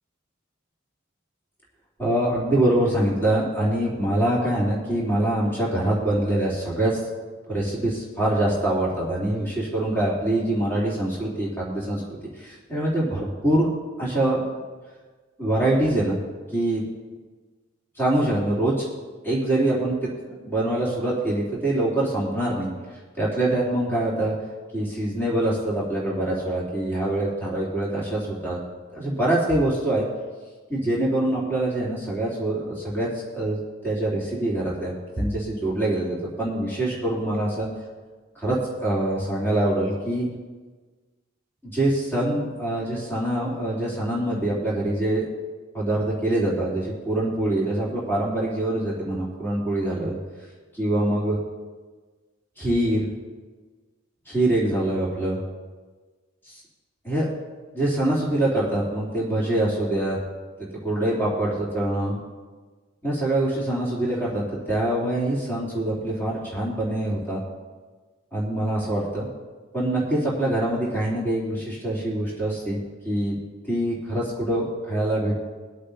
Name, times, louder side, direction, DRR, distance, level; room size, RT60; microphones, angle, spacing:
voice 1, 2.0-7.0 7.5-13.7 14.0-14.4 15.4-16.2 16.5-16.8 18.0-18.7 19.2-20.1 20.4-22.7 23.2-24.3 24.7-28.6 28.9-30.0 30.7-33.6 33.8-37.7 38.3-40.3 41.7-45.3 45.7-50.1 50.7-51.4 52.6-53.1 54.3-55.4 57.0-57.3 57.7-60.2 60.6-62.2 63.0-67.4 68.3-69.3 69.7-72.8 73.0-73.3 73.7-75.3, right 1 dB, 10° left, -7 dB, 3.3 m, -24 dB
24.0 x 8.4 x 2.8 m, 1.4 s
head